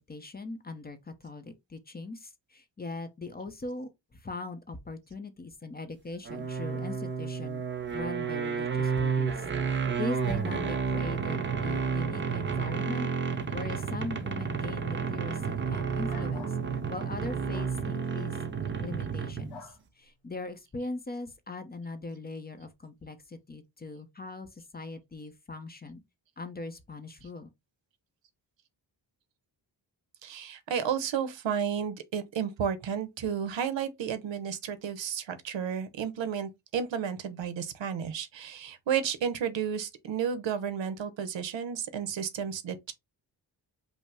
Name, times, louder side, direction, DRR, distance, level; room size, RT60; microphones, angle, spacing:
voice 1, 0.1-7.6 7.9-13.1 13.5-18.4 18.8-26.0 26.4-27.5, left 3 dB, 20° left, 0.6 m, -40 dB
sound 1, 6.2-19.6, right 6 dB, 25° right, 0.6 m, -31 dB
sound 2, 16.0-16.6 17.5-17.8 19.5-19.8, left 5 dB, 85° left, 1.4 m, -47 dB
voice 2, 30.2-42.9, right 8 dB, 80° right, 0.9 m, -32 dB
5.3 x 2.0 x 4.7 m
wide cardioid pair, 175°, 44 cm